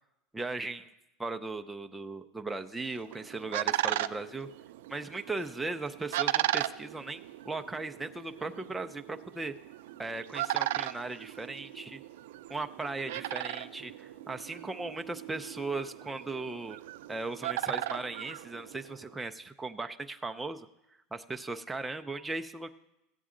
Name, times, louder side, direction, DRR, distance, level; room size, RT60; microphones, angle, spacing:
voice 1, 0.3-0.9 1.2-4.5 4.9-9.5 10.0-12.0 12.5-16.8 17.1-20.7 21.1-22.7, right 3 dB, 5° right, 5 dB, 0.4 m, -37 dB
sound 1, 2.9-19.1, right 14 dB, 85° right, 0.3 m, -37 dB
15.0 x 8.1 x 3.8 m, 0.92 s
supercardioid pair, 150°, 0 cm